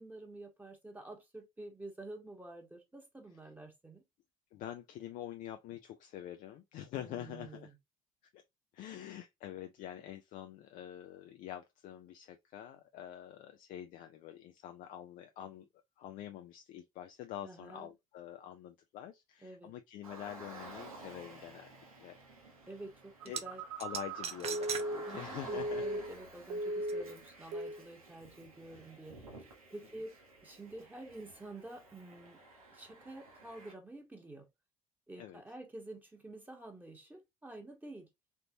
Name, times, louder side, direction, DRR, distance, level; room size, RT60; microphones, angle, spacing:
voice 1, 0.0-4.0 6.9-7.7 17.4-17.9 19.4-19.7 22.7-23.6 25.1-32.4 32.7-34.5 35.1-38.1, right 2 dB, 10° right, 1.3 m, -49 dB
voice 2, 4.5-7.7 8.3-8.4 8.7-15.7 16.0-22.2 23.3-23.4 23.8-25.9 35.2-35.4, left 11 dB, 50° left, 0.5 m, -46 dB
Car, 20.0-33.7, right 2 dB, 80° right, 1.1 m, -53 dB
sound 1, 23.2-23.4 23.8-24.9 25.3-25.4 26.9-27.0, right 7 dB, 35° right, 0.6 m, -38 dB
Telephone, 23.2-26.2 26.5-27.2 27.5-27.8, right 1 dB, 55° right, 1.3 m, -38 dB
3.8 x 3.5 x 2.7 m
figure-of-eight pair, 55°, 18 cm